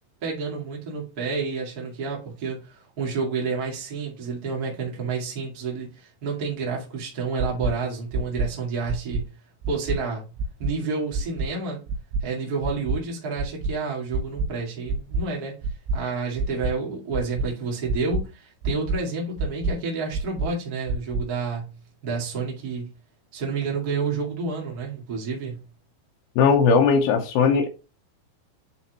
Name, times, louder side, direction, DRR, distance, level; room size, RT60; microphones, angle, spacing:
voice 1, 0.2-9.3 9.7-10.3 10.6-11.8 12.2-15.6 15.9-21.7 22.0-22.9 23.3-25.6, right 4 dB, 50° right, 1.1 m, -29 dB
sound 1, 7.4-7.7 8.1-8.5 8.9-9.2 9.6-10.0 10.4-10.7 11.1-11.5 11.9-12.2 12.6-13.0 13.4-13.7 14.1-14.5 14.9-15.2 15.6-16.0 16.4-16.7 17.1-17.5 17.9-18.2 18.6-19.0 19.4-19.7 20.1-20.5 20.9-21.2, right 2 dB, 85° right, 3.0 m, -26 dB
voice 2, 26.4-27.7, left 5 dB, 75° left, 2.2 m, -18 dB
9.4 x 4.3 x 3.0 m
omnidirectional pair, 5.2 m